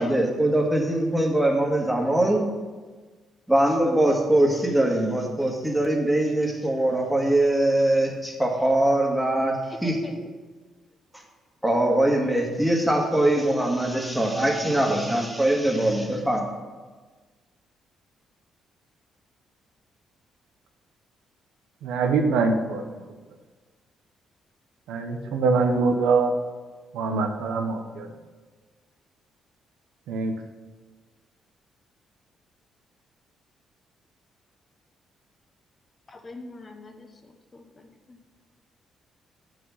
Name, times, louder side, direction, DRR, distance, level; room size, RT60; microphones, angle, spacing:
voice 1, 0.0-2.4 3.5-9.6 9.8-10.0 11.6-16.4, right 1 dB, 5° right, 0 dB, 1.8 m, -22 dB
voice 2, 9.6-10.2 36.1-37.1 37.5-38.2, left 2 dB, 30° left, 5 dB, 1.0 m, -41 dB
voice 3, 21.8-22.8 24.9-26.3 26.9-28.1 30.1-30.4, right 4 dB, 90° right, 5 dB, 0.9 m, -23 dB
7.8 x 6.1 x 5.7 m, 1.4 s
cardioid pair, 90°, 0 cm